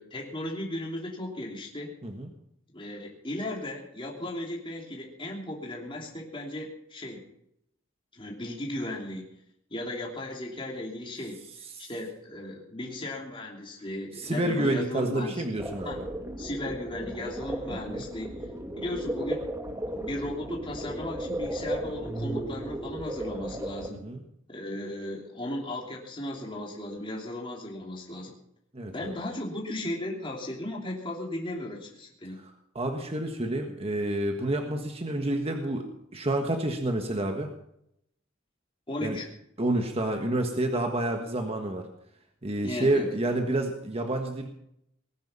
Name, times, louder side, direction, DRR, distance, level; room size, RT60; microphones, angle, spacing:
voice 1, 0.0-1.9 2.7-7.3 8.1-9.3 9.7-11.4 11.8-15.4 15.8-16.0 16.4-18.3 18.8-19.5 19.9-24.0 24.5-28.3 28.9-32.4 38.9-39.3 42.6-43.0, left 1 dB, 25° left, -2 dB, 3.1 m, -36 dB
voice 2, 14.1-16.1 17.7-18.0 23.9-24.2 28.7-29.2 32.4-35.9 36.1-37.5 39.0-39.2 39.6-41.9 42.4-44.5, right 1 dB, 30° right, 4 dB, 1.5 m, -29 dB
sound 1, 15.6-23.9, right 1 dB, 15° right, 1.4 m, -35 dB
20.0 x 10.5 x 5.7 m, 0.76 s
head